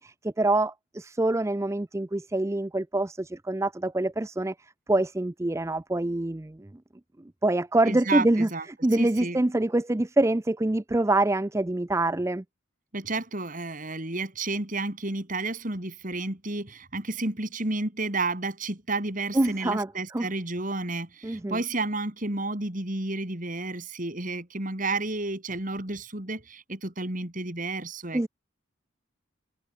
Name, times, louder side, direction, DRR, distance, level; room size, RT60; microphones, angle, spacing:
voice 1, 0.0-4.5 4.9-6.7 7.4-8.5 8.8-12.4 19.3-20.3 21.2-21.6 28.1-28.3, right 2 dB, 15° right, 0.4 m, -25 dB
voice 2, 7.9-8.6 9.0-9.4 12.9-28.3, right 2 dB, 40° right, 2.9 m, -31 dB
head